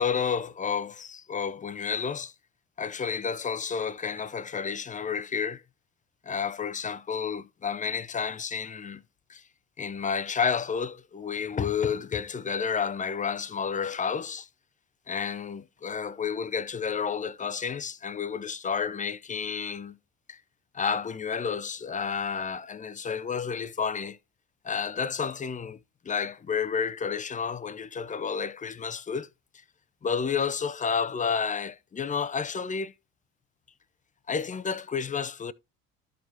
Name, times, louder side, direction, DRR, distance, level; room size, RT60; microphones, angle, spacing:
voice 1, 0.0-2.3 2.8-5.6 6.2-9.0 9.3-9.4 9.8-14.5 15.1-20.0 20.3-20.4 20.7-24.2 24.6-25.8 26.0-29.3 30.0-32.9 34.3-35.5, left 6 dB, 20° left, 0.6 m, -30 dB
13.0 x 4.5 x 2.8 m
hypercardioid pair, 65°, 38 cm